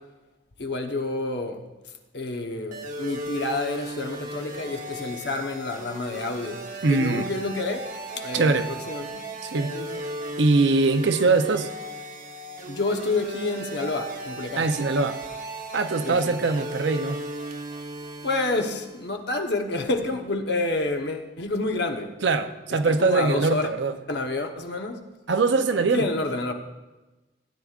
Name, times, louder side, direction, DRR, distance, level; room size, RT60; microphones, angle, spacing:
voice 1, 0.6-1.6 2.1-7.8 8.1-9.2 9.7-10.0 12.7-14.7 16.0-16.4 18.2-22.1 22.8-23.7 24.1-25.0 25.9-26.5, left 2 dB, 60° left, 1.0 m, -29 dB
sound 1, 2.7-19.1, right 2 dB, 45° right, 1.0 m, -36 dB
voice 2, 6.8-7.3 8.3-8.7 9.4-9.8 10.4-11.7 14.6-15.2 15.7-17.2 22.2-23.9 25.3-26.1, right 3 dB, 75° right, 0.6 m, -22 dB
16.0 x 9.2 x 2.4 m
head